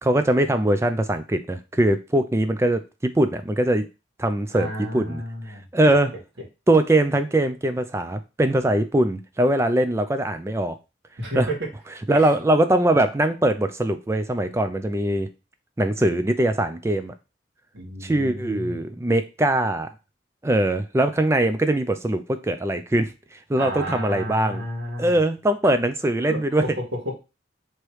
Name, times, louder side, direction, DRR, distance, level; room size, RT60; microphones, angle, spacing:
voice 1, 0.0-3.8 4.2-4.7 4.9-5.2 5.7-6.1 6.7-10.8 11.4-11.5 12.1-15.3 15.8-17.1 18.0-19.9 20.4-24.7 25.0-26.6, right 1 dB, 15° right, 9 dB, 0.3 m, -21 dB
voice 2, 4.5-5.9 11.2-11.7 12.1-12.3 17.7-18.8 23.6-25.2 26.3-26.7 27.0-27.1, equal, 80° right, 0 dB, 1.6 m, -32 dB
3.2 x 3.0 x 4.6 m, 0.29 s
head